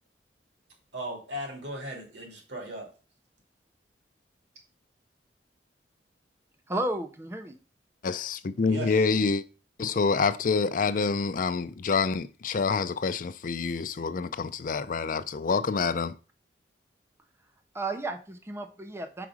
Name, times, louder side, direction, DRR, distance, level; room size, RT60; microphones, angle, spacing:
voice 1, 0.9-2.9 8.7-9.1, right 1 dB, 90° right, 2.7 m, -37 dB
voice 2, 6.7-7.6 17.7-19.3, right 2 dB, 15° right, 0.6 m, -33 dB
voice 3, 8.0-9.4 9.8-16.1, left 4 dB, 50° left, 0.5 m, -27 dB
5.0 x 4.7 x 6.2 m
head